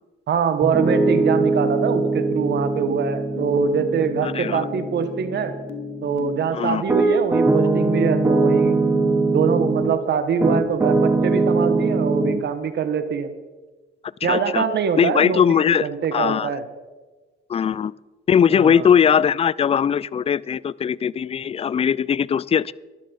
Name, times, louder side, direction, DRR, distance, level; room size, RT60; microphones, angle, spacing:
voice 1, 0.3-5.5 6.0-8.8 9.3-13.3 14.2-16.6 18.5-18.9, right 6 dB, 60° right, 10 dB, 1.2 m, -23 dB
Piano, 0.6-10.0 10.4-12.4, right 3 dB, 10° right, 1.3 m, -22 dB
sound 1, 3.4-8.4, left 9 dB, 85° left, 1.0 m, -37 dB
voice 2, 4.2-4.6 6.5-6.8 14.2-14.6 15.0-16.5 17.5-17.9 18.3-22.7, left 8 dB, 30° left, 21 dB, 0.4 m, -20 dB
13.0 x 11.5 x 5.3 m, 1.3 s
cardioid pair, 90°, 20 cm